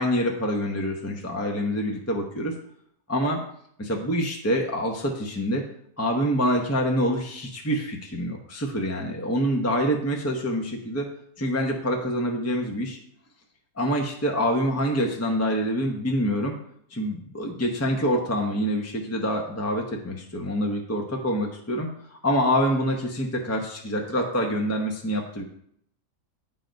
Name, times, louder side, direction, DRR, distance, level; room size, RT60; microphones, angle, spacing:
voice 1, 0.0-2.5 3.1-3.4 3.8-5.6 6.0-11.1 11.4-13.0 13.8-16.5 16.9-25.4, equal, 15° left, 1 dB, 0.5 m, -26 dB
9.0 x 4.0 x 5.1 m, 0.69 s
omnidirectional pair, 1.7 m